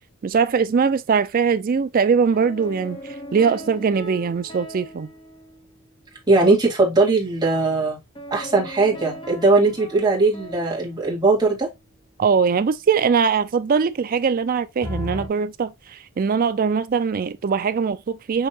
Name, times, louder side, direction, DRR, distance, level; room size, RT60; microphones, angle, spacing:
voice 1, 0.2-3.0 3.3-5.1 12.2-18.5, right 6 dB, 40° right, 0.3 m, -21 dB
sound 1, 2.3-6.1 8.2-11.7 14.8-15.3, left 1 dB, 20° left, 0.8 m, -37 dB
voice 2, 6.3-8.0 8.3-11.7, right 3 dB, 20° right, 1.7 m, -19 dB
6.3 x 2.8 x 2.7 m
head